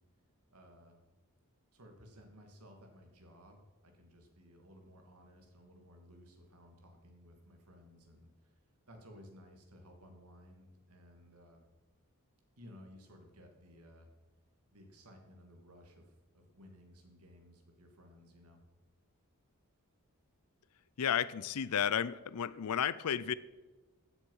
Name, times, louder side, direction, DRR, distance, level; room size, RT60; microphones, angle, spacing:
voice 1, 0.5-1.0 1.7-8.6 8.9-11.6 12.6-14.1 14.7-16.1 16.3-18.6, equal, 85° right, 4 dB, 2.3 m, -57 dB
voice 2, 21.0-23.3, left 8 dB, 80° left, 18 dB, 0.5 m, -32 dB
15.0 x 7.3 x 5.5 m, 1.2 s
head